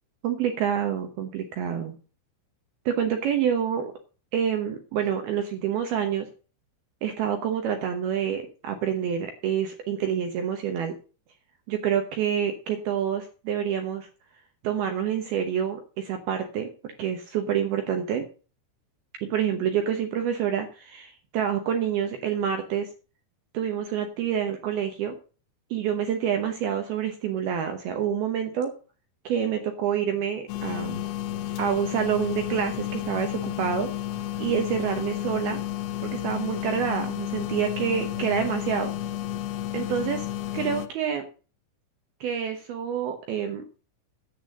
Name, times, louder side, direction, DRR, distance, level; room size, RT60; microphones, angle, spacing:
voice 1, 0.2-1.9 2.9-3.9 4.3-6.3 7.0-10.9 11.7-14.1 14.6-18.2 19.2-22.9 23.5-25.2 25.7-28.7 29.3-31.0 31.6-33.9 34.4-35.6 36.0-38.9 39.7-40.3 40.5-41.2 42.2-43.6, right 8 dB, 80° right, 6 dB, 2.2 m, -27 dB
sound 1, 30.5-40.9, left 13 dB, 75° left, 2.4 m, -32 dB
10.0 x 8.2 x 6.5 m, 0.37 s
omnidirectional pair, 5.8 m